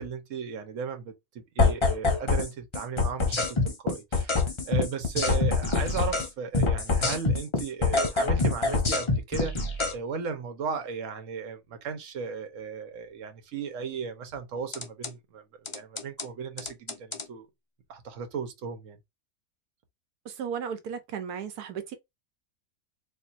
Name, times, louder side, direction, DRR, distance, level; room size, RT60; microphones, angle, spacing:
voice 1, 0.0-4.4 4.7-17.5 17.9-19.0, right 6 dB, 60° right, 1.2 m, -36 dB
sound 1, 1.6-2.5 2.7-6.3 6.5-9.9 14.7-15.1 15.7-16.2 16.6-17.2, left 3 dB, 40° left, 0.4 m, -25 dB
voice 2, 20.2-22.0, right 7 dB, 85° right, 1.3 m, -35 dB
4.3 x 2.6 x 2.5 m
omnidirectional pair, 1.6 m